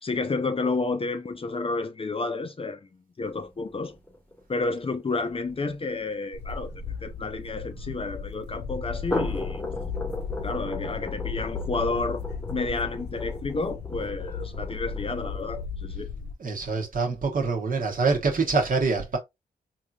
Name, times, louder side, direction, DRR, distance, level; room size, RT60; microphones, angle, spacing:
voice 1, 0.0-2.8 3.2-4.0 4.5-6.7 7.0-9.6 10.4-12.2 12.5-16.1, left 3 dB, 30° left, 0.5 m, -30 dB
sound 1, 3.2-7.8 8.9-15.6, left 2 dB, 10° left, 1.0 m, -37 dB
sound 2, 6.3-16.3, left 5 dB, 75° left, 0.7 m, -35 dB
voice 2, 16.4-19.2, right 4 dB, 50° right, 1.0 m, -25 dB
3.5 x 2.7 x 2.3 m
cardioid pair, 55°, 18 cm